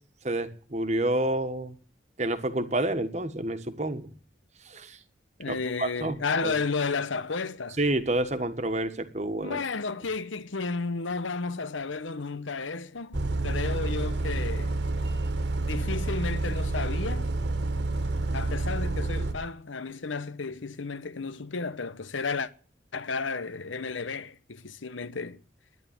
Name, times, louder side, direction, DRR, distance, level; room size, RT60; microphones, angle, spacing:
voice 1, 0.2-1.7 2.2-4.1 4.6-5.0 5.5-6.2 6.4-6.5 7.8-9.6, right 1 dB, 35° right, 1.4 m, -29 dB
voice 2, 5.4-7.8 9.4-14.7 15.6-17.3 18.3-22.5 22.9-25.4, left 4 dB, 85° left, 1.0 m, -32 dB
Bus, 13.1-19.3, right 2 dB, 65° right, 1.5 m, -29 dB
11.5 x 10.5 x 9.2 m
head